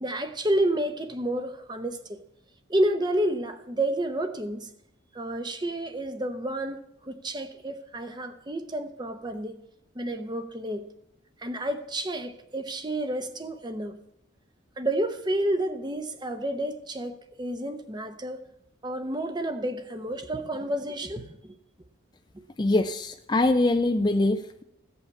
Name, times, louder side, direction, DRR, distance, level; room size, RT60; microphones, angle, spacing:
voice 1, 0.0-2.2 2.7-4.7 5.1-6.8 7.0-9.6 9.9-10.9 11.4-14.0 14.8-18.4 18.8-21.5, right 1 dB, 20° right, 0.8 m, -30 dB
voice 2, 22.6-24.6, left 2 dB, 20° left, 0.4 m, -23 dB
15.0 x 5.7 x 8.2 m
head